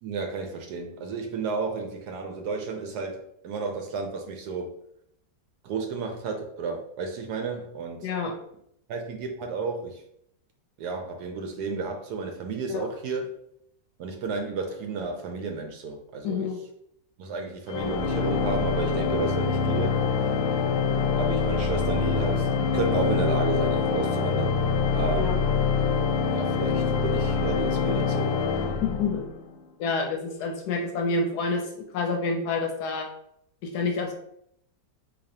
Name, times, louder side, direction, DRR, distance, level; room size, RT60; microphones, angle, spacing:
voice 1, 0.0-4.7 5.6-8.1 8.9-10.0 10.8-13.3 14.0-16.5 17.2-20.0 21.2-24.6 24.9-25.4 26.3-28.3, right 4 dB, 70° right, 4 dB, 1.0 m, -32 dB
voice 2, 8.0-8.3 12.7-12.9 16.2-16.6 25.2-25.4 28.8-29.3 29.8-33.1 33.6-34.1, left 4 dB, 70° left, 3 dB, 1.0 m, -28 dB
Organ, 17.7-29.5, left 5 dB, 90° left, 1.3 m, -25 dB
4.1 x 2.9 x 2.7 m, 0.73 s
omnidirectional pair, 1.9 m